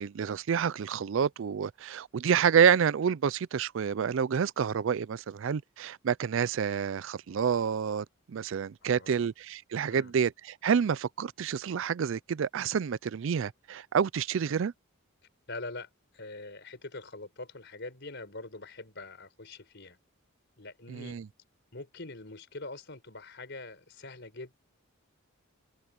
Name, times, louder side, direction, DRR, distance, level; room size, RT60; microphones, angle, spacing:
voice 1, 0.0-14.7 20.9-21.3, right 7 dB, 65° right, 0.4 m, -28 dB
voice 2, 8.8-9.3 9.9-10.1 15.5-20.0 20.6-21.2 21.7-24.6, left 2 dB, 55° left, 4.9 m, -43 dB
open air
head